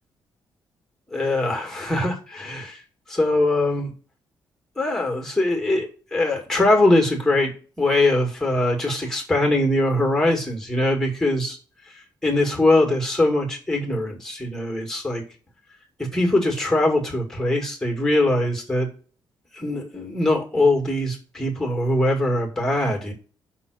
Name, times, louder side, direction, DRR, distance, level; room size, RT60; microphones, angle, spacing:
voice 1, 1.1-2.8 3.1-3.9 4.8-7.5 7.8-11.6 12.2-15.2 16.0-18.9 19.6-23.1, left 1 dB, 5° left, 2 dB, 2.1 m, -22 dB
5.8 x 4.0 x 6.2 m, 0.37 s
cardioid pair, 130°, 8 cm